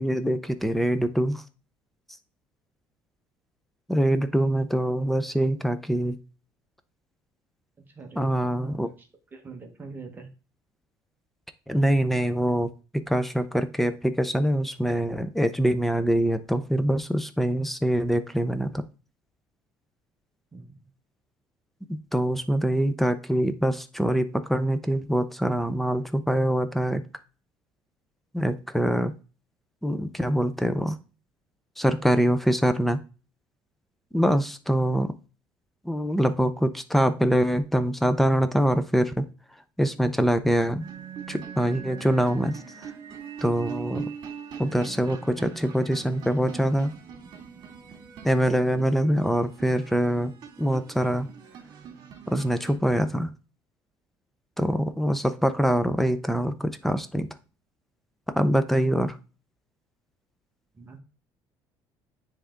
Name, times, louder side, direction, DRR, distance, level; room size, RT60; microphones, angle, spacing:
voice 1, 0.0-1.4 3.9-6.2 8.2-8.9 11.7-18.9 21.9-27.0 28.3-29.1 29.8-31.0 31.8-33.0 34.1-35.1 35.8-39.3 39.8-40.9 41.3-42.9 43.4-44.1 44.6-46.9 48.2-50.3 50.6-51.3 52.3-53.3 54.6-57.3 58.4-59.2, equal, ahead, 11 dB, 0.6 m, -24 dB
voice 2, 7.9-10.3 20.5-20.8 60.7-61.0, right 4 dB, 20° right, 3 dB, 1.3 m, -44 dB
sound 1, 40.8-52.7, right 7 dB, 55° right, 2.4 m, -41 dB
9.7 x 3.5 x 3.8 m, 0.34 s
cardioid pair, 140°, 9 cm